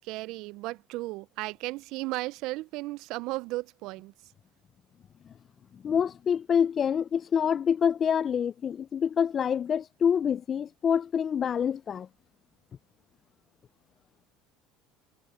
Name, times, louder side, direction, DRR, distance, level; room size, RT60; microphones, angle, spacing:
voice 1, 0.0-4.1, right 20 dB, 70° right, 0.3 m, -35 dB
voice 2, 5.7-12.1, left 7 dB, 35° left, 0.4 m, -26 dB
supercardioid pair, 110°, 0 cm